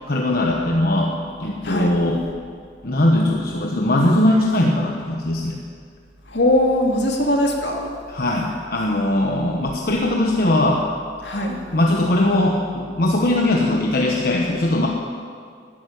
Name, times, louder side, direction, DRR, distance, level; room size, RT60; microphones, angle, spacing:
voice 1, 0.1-2.2 2.8-5.6 8.1-10.9 11.7-14.9, left 1 dB, 55° left, 0 dB, 1.3 m, -20 dB
voice 2, 1.6-2.0 6.3-7.9 11.2-11.6, left 1 dB, 75° left, 1 dB, 2.6 m, -20 dB
12.5 x 11.5 x 9.6 m, 2.1 s
head